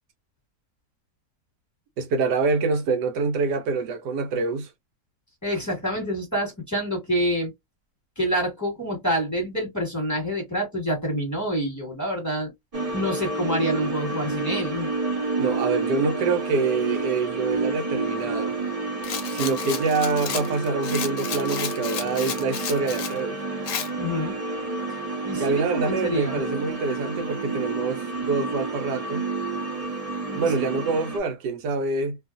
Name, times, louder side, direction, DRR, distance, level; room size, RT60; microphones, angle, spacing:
voice 1, 2.0-4.7 15.4-18.5 19.3-23.4 25.4-29.3 30.3-32.2, right 4 dB, 80° right, 1.3 m, -26 dB
voice 2, 5.4-7.5 8.2-12.5 12.9-14.9 24.0-24.4 25.2-26.4 30.2-30.7, equal, 10° left, 1.3 m, -27 dB
sound 1, 12.7-31.2, right 3 dB, 35° right, 0.6 m, -29 dB
Rattle, 19.0-23.2 23.7-23.9, left 8 dB, 65° left, 1.0 m, -32 dB
2.8 x 2.4 x 2.4 m
omnidirectional pair, 1.8 m